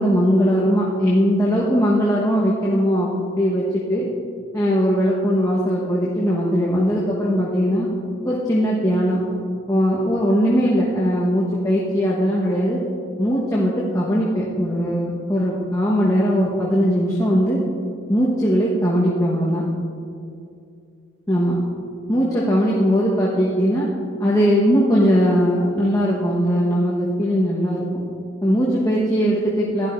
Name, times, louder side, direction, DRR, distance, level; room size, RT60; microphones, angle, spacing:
voice 1, 0.0-3.1 3.3-4.1 4.5-7.9 8.2-9.2 9.7-12.8 13.2-17.6 18.1-19.6 21.3-21.6 22.1-23.9 24.2-28.0 28.4-29.9, equal, 15° left, -7 dB, 1.3 m, -19 dB
16.0 x 11.5 x 2.6 m, 2.4 s
head